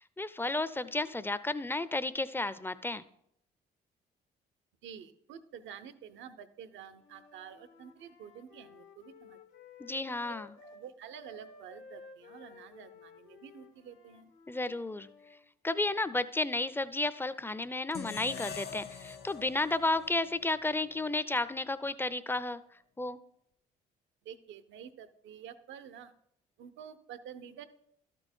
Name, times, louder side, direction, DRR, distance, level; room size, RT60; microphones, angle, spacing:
voice 1, 0.0-3.0 9.8-10.5 14.5-15.4 15.6-23.2, left 2 dB, 10° left, 15 dB, 0.5 m, -33 dB
voice 2, 4.8-9.4 10.6-14.3 24.2-26.1 26.6-27.7, right 8 dB, 70° right, 13 dB, 0.7 m, -49 dB
Wind instrument woodwind instrument, 7.0-10.9 11.1-15.4, left 5 dB, 75° left, 1.3 m, -55 dB
sound 1, 17.9-21.1, left 6 dB, 55° left, 1.0 m, -44 dB
12.5 x 4.5 x 4.4 m, 0.72 s
hypercardioid pair, 50°, 20 cm